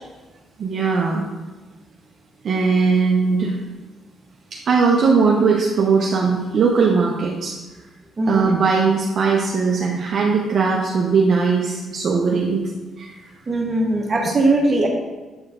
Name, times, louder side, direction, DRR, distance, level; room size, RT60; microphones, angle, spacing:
voice 1, 0.6-1.2 2.4-3.6 4.5-7.6 8.3-12.7 13.0-13.2, right 5 dB, 55° right, -2 dB, 0.7 m, -19 dB
voice 2, 8.2-8.5 13.5-14.9, right 2 dB, 30° right, -1 dB, 1.5 m, -19 dB
7.8 x 4.4 x 3.7 m, 1.2 s
cardioid pair, 90°, 0 cm